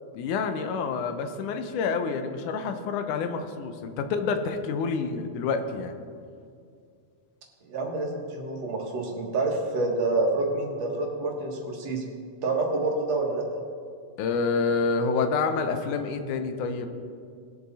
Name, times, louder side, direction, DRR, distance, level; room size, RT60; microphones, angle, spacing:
voice 1, 0.1-5.9 14.2-16.9, left 4 dB, 80° left, 7 dB, 2.3 m, -28 dB
voice 2, 7.7-12.0 12.4-13.4, right 2 dB, 60° right, 0 dB, 2.6 m, -27 dB
20.0 x 6.7 x 4.2 m, 2.2 s
omnidirectional pair, 3.5 m